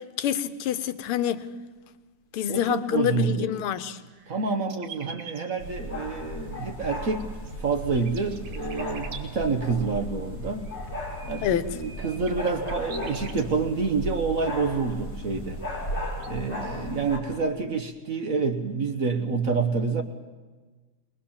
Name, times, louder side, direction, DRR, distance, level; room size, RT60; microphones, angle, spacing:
voice 1, 0.0-1.5 2.3-4.0 11.4-11.7, left 10 dB, 85° left, 13 dB, 1.8 m, -27 dB
voice 2, 2.5-3.5 4.3-7.3 7.6-10.7 11.3-15.6 16.3-20.0, right 4 dB, 45° right, 6 dB, 1.3 m, -28 dB
sound 1, 2.9-3.0 3.3-5.4 7.2-9.2 10.4-13.4 14.1-14.2 15.5-15.6 15.9-16.3 16.5-16.9, right 6 dB, 80° right, 2.6 m, -45 dB
sound 2, 5.6-17.2, equal, 30° left, 4.9 m, -35 dB
22.0 x 20.5 x 7.2 m, 1.3 s
omnidirectional pair, 2.4 m